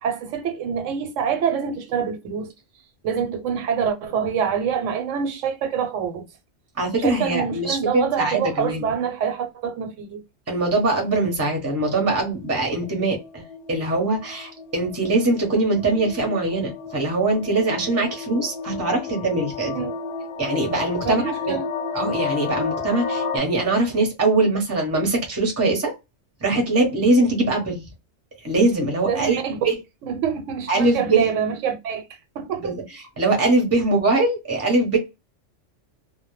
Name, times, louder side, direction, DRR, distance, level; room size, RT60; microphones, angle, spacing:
voice 1, 0.0-2.5 3.0-6.3 7.0-10.2 19.7-19.9 21.0-21.7 29.1-29.6 30.0-32.1 32.4-32.8, right 7 dB, 80° right, 0.9 m, -26 dB
voice 2, 6.8-8.9 10.5-19.7 20.4-21.6 21.9-25.9 26.4-27.9 28.4-29.7 30.7-31.2 32.6-32.7 33.2-35.0, right 2 dB, 15° right, 0.6 m, -22 dB
sound 1, 11.7-23.4, left 5 dB, 75° left, 0.3 m, -32 dB
2.1 x 2.0 x 3.0 m
omnidirectional pair, 1.3 m